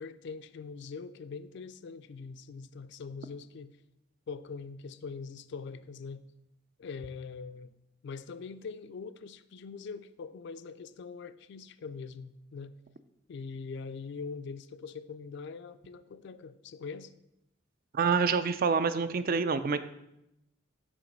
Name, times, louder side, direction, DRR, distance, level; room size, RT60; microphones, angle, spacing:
voice 1, 0.0-3.7 4.3-6.2 6.8-7.7 8.0-12.8 13.3-17.1, left 5 dB, 60° left, 13 dB, 0.3 m, -42 dB
voice 2, 17.9-19.8, right 5 dB, 50° right, 12 dB, 0.4 m, -27 dB
7.6 x 3.0 x 5.2 m, 0.84 s
head